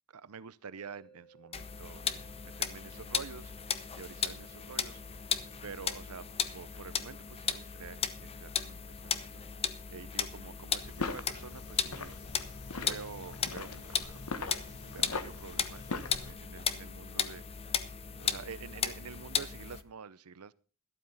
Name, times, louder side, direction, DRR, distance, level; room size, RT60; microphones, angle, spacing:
voice 1, 0.1-5.3 5.6-6.3 6.5-9.4 9.9-12.1 12.7-14.3 14.7-17.7 18.1-20.5, right 5 dB, 90° right, 18 dB, 0.7 m, -48 dB
sound 1, 0.8-13.8, right 5 dB, 70° left, 3.4 m, -65 dB
sound 2, 1.5-19.8, left 7 dB, 25° left, 0.8 m, -36 dB
sound 3, 10.8-16.3, left 3 dB, 85° left, 1.3 m, -41 dB
12.5 x 12.0 x 4.0 m, 0.36 s
head